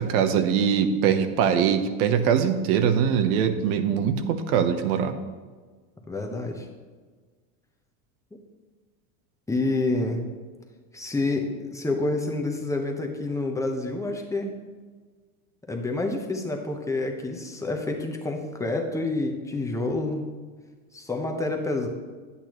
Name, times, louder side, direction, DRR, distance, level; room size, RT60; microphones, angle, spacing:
voice 1, 0.0-5.1, right 7 dB, 80° right, 8 dB, 1.0 m, -22 dB
voice 2, 6.1-6.7 9.5-10.2 10.9-14.6 15.7-20.3 20.9-21.9, left 2 dB, 5° left, 2 dB, 0.9 m, -28 dB
10.0 x 8.4 x 3.1 m, 1.4 s
supercardioid pair, 130°, 44 cm